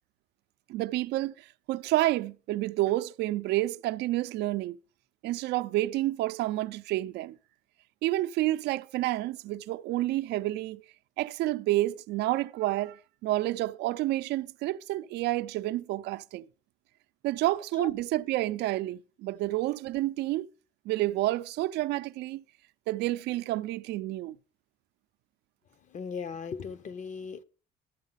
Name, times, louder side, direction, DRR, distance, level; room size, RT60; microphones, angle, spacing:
voice 1, 0.7-4.8 5.2-7.4 8.0-10.8 11.2-16.4 17.2-20.5 20.9-22.4 22.9-24.4, right 16 dB, 80° right, 0.5 m, -29 dB
voice 2, 25.9-27.4, left 6 dB, 45° left, 0.9 m, -37 dB
12.5 x 7.3 x 5.7 m
cardioid pair, 110°, 17 cm